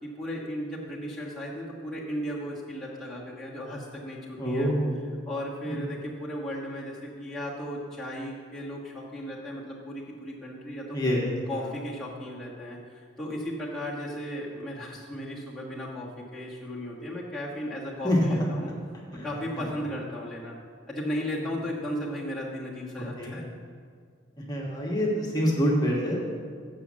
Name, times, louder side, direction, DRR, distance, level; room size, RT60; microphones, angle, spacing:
voice 1, 0.0-4.7 5.3-11.0 11.5-12.8 13.2-18.7 19.2-20.6 20.9-23.4, equal, 5° left, -7 dB, 1.3 m, -35 dB
voice 2, 4.4-5.0 5.6-5.8 10.9-11.3 11.5-11.7 18.0-18.5 19.1-19.3 19.6-19.7 21.3-21.4 23.2-23.4 24.4-26.2, equal, 20° left, -3 dB, 1.3 m, -26 dB
7.6 x 6.3 x 7.3 m, 2.1 s
head